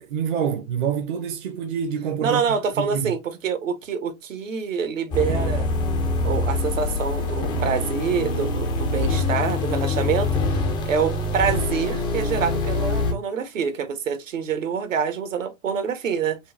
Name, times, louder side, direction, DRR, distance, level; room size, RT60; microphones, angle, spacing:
voice 1, 0.0-2.4 2.8-3.1 5.3-5.4, right 8 dB, 35° right, 0.7 m, -26 dB
voice 2, 2.2-5.7 6.2-16.4, right 6 dB, 65° right, 1.0 m, -26 dB
sound 1, 5.1-13.1, left 2 dB, 10° left, 0.4 m, -24 dB
5.3 x 2.3 x 2.5 m
figure-of-eight pair, 110°, 43 cm